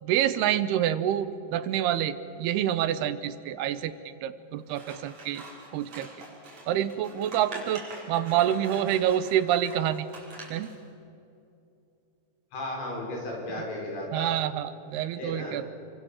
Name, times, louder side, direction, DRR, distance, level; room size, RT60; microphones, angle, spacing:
voice 1, 0.0-5.4 5.7-6.1 6.7-10.1 10.5-10.7 14.1-15.6, right 11 dB, 80° right, 13 dB, 2.7 m, -27 dB
Scissors, 4.7-10.8, right 2 dB, 40° right, 6.0 m, -45 dB
voice 2, 12.5-14.3 15.1-15.6, left 1 dB, 90° left, -1 dB, 8.2 m, -35 dB
28.0 x 24.5 x 7.4 m, 2.7 s
omnidirectional pair, 4.9 m